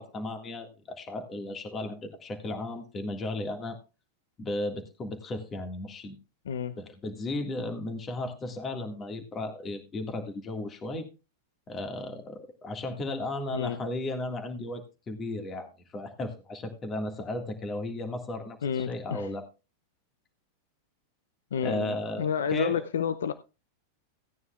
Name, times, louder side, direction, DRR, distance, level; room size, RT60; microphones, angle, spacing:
voice 1, 0.0-3.8 4.4-6.2 6.8-11.1 11.7-19.5 21.6-22.9, left 2 dB, 25° left, 5 dB, 1.9 m, -35 dB
voice 2, 18.6-19.3 21.5-23.3, left 8 dB, 80° left, 13 dB, 0.6 m, -30 dB
17.0 x 9.6 x 2.4 m, 0.29 s
hypercardioid pair, 105°, 0 cm